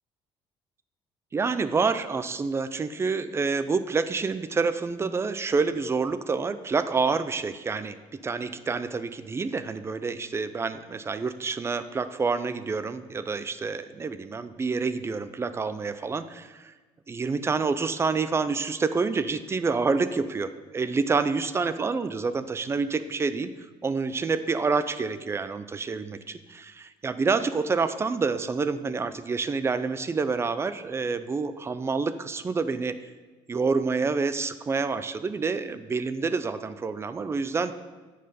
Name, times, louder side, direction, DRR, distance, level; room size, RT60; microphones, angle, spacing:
voice 1, 1.3-8.0 8.2-16.7 17.1-23.5 23.8-33.0 33.5-37.7, right 4 dB, 25° right, 13 dB, 0.4 m, -28 dB
7.7 x 5.0 x 4.0 m, 1.3 s
cardioid pair, 100°, 11 cm